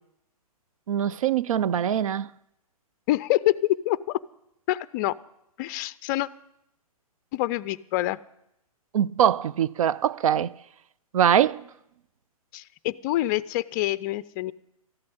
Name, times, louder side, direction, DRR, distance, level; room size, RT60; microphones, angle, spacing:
voice 1, 0.9-2.3 8.9-10.5 11.1-11.6, right 9 dB, 65° right, 0.4 m, -22 dB
voice 2, 3.1-4.2 4.7-5.1 5.6-6.3 7.3-8.2 12.5-14.5, left 16 dB, 30° left, 0.4 m, -26 dB
13.0 x 8.5 x 9.9 m
hypercardioid pair, 130°, 19 cm